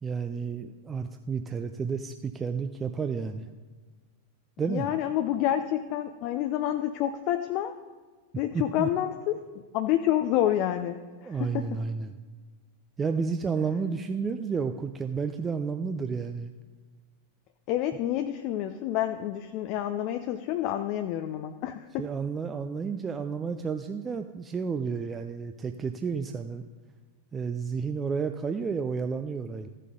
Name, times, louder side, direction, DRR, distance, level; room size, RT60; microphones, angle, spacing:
voice 1, 0.0-3.5 4.6-4.9 8.5-8.9 11.3-12.1 13.0-16.5 22.0-26.7 27.3-29.7, right 5 dB, 20° right, 7 dB, 0.4 m, -31 dB
voice 2, 4.7-7.7 8.4-11.8 17.7-22.1, left 12 dB, 40° left, 8 dB, 0.4 m, -28 dB
14.5 x 6.6 x 3.8 m, 1.4 s
figure-of-eight pair, 90°, 0 cm